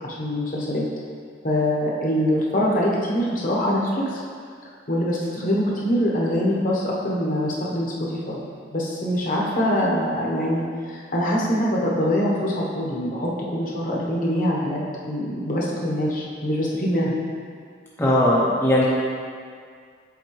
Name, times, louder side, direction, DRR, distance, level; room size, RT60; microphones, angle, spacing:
voice 1, 0.0-0.8 1.4-4.2 4.9-8.4 8.7-14.8 15.1-17.1, equal, 45° left, -4 dB, 0.9 m, -24 dB
voice 2, 18.0-18.8, left 1 dB, 10° left, -8 dB, 0.6 m, -18 dB
7.2 x 4.3 x 3.1 m, 2.1 s
head